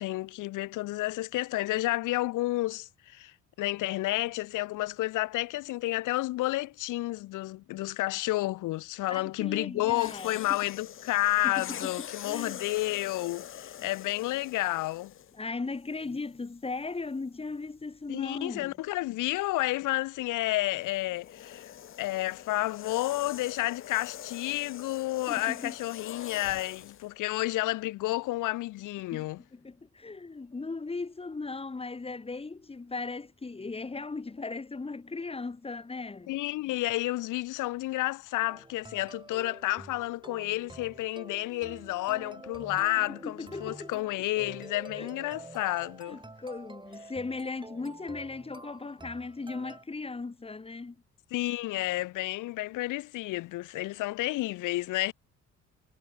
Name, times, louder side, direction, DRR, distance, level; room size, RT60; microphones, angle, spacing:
voice 1, 0.0-15.1 18.1-21.7 22.0-29.4 36.3-46.2 51.3-55.1, left 18 dB, 85° left, 0.7 m, -31 dB
voice 2, 9.1-10.6 11.4-12.6 15.3-18.7 25.3-25.7 29.1-36.3 43.2-43.9 44.9-45.1 46.1-51.0, left 3 dB, 20° left, 1.3 m, -38 dB
sound 1, 9.9-15.4 16.2-16.4 20.4-27.1, left 10 dB, 45° left, 0.6 m, -44 dB
sound 2, 38.5-49.8, right 2 dB, 15° right, 7.3 m, -48 dB
cardioid pair, 90°, 30 cm